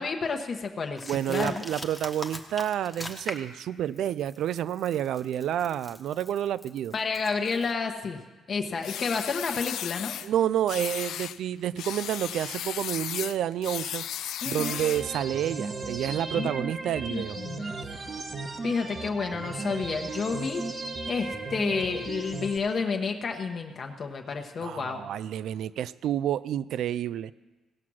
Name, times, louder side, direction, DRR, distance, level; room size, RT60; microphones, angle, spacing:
voice 1, 0.0-1.6 6.9-8.2 8.5-10.2 14.4-14.8 16.4-16.6 17.1-17.8 18.6-20.6 21.1-25.0, left 5 dB, 50° left, 3 dB, 1.0 m, -30 dB
sound 1, 1.0-3.6 4.0-7.7, left 1 dB, 5° left, 1.1 m, -41 dB
voice 2, 1.0-6.9 10.2-17.4 24.6-27.3, right 11 dB, 75° right, 18 dB, 0.3 m, -29 dB
sound 2, 8.8-10.3 10.7-11.4 11.8-15.1, left 11 dB, 80° left, 0.3 m, -35 dB
sound 3, 14.6-22.6, right 3 dB, 35° right, 1.1 m, -36 dB
17.5 x 5.8 x 6.2 m, 1.2 s
cardioid pair, 90°, 0 cm